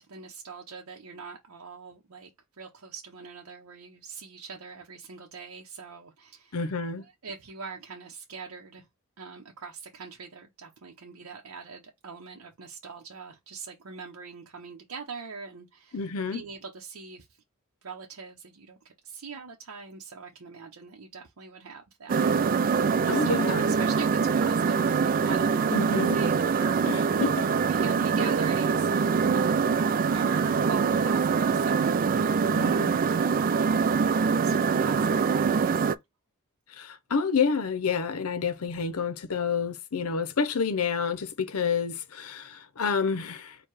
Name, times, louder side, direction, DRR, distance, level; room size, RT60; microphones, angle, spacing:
voice 1, 0.0-2.3 2.6-6.6 7.0-8.9 9.2-16.0 16.3-17.4 17.8-22.3 23.0-27.0 27.7-29.7 30.1-31.8 32.6-33.6 33.9-35.9, right 5 dB, 80° right, 0.8 m, -43 dB
voice 2, 6.5-7.0 15.9-16.4 23.1-23.7 25.7-26.2 26.9-27.5 32.5-33.0 36.7-43.6, left 5 dB, 85° left, 0.7 m, -29 dB
sound 1, 22.1-36.0, right 5 dB, 40° right, 0.3 m, -24 dB
4.6 x 2.3 x 4.6 m
head